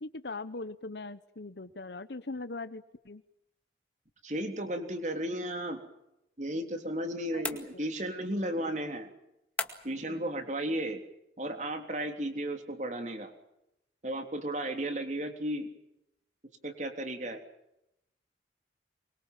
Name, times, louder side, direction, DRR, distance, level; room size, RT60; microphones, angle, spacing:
voice 1, 0.0-3.2 7.3-7.4 7.7-7.9, left 3 dB, 70° left, 12 dB, 1.0 m, -40 dB
voice 2, 4.2-5.8 6.4-9.1 9.8-11.0 11.4-13.3 14.0-15.7 16.6-17.4, right 1 dB, 40° right, 5 dB, 3.5 m, -34 dB
sound 1, 7.4-8.2 9.6-10.1, left 2 dB, 5° left, 2.0 m, -37 dB
24.5 x 23.0 x 7.5 m, 0.83 s
head